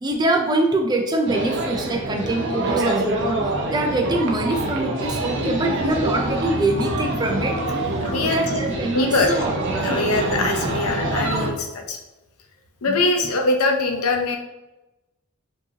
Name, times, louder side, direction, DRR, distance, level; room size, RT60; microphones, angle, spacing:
voice 1, 0.0-7.6 8.0-9.5 12.8-13.0, right 2 dB, 20° right, 2 dB, 0.4 m, -24 dB
sound 1, 1.3-11.5, right 2 dB, 55° right, 0.7 m, -25 dB
sound 2, 5.1-10.5, equal, 25° left, 1.5 m, -38 dB
voice 2, 8.0-8.6 8.9-9.4 9.8-12.0 12.8-14.4, left 2 dB, 85° left, 4 dB, 0.6 m, -22 dB
4.9 x 2.8 x 2.8 m, 1.0 s
head